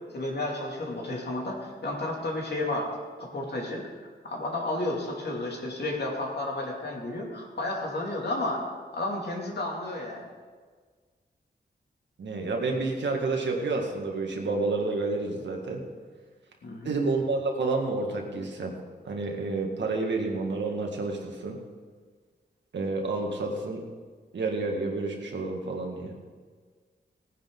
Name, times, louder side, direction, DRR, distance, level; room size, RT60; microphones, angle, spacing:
voice 1, 0.1-2.9 3.2-3.8 4.2-8.6 8.9-10.2 16.6-17.0, left 2 dB, 65° left, -1 dB, 2.7 m, -32 dB
voice 2, 12.2-15.8 16.8-18.8 19.0-21.6 22.7-23.8 24.3-26.1, right 3 dB, 85° right, 1 dB, 1.9 m, -29 dB
17.5 x 10.0 x 3.9 m, 1.5 s
wide cardioid pair, 130°, 18 cm